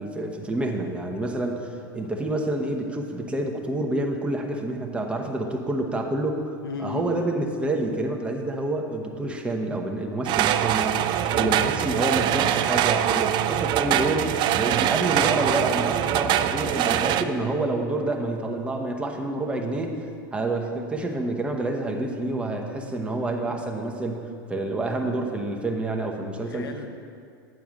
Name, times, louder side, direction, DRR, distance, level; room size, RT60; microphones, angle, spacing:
voice 1, 0.0-6.4 6.8-11.0 11.3-19.9 20.3-24.2 24.5-26.6, right 2 dB, 10° right, 1 dB, 1.0 m, -28 dB
voice 2, 6.6-7.2 9.2-9.4 11.3-11.6 22.8-23.6 26.4-26.9, left 5 dB, 90° left, 6 dB, 0.9 m, -36 dB
sound 1, 10.3-17.2, right 11 dB, 40° right, 0.4 m, -23 dB
8.9 x 4.7 x 6.3 m, 2.3 s
hypercardioid pair, 105°, 12 cm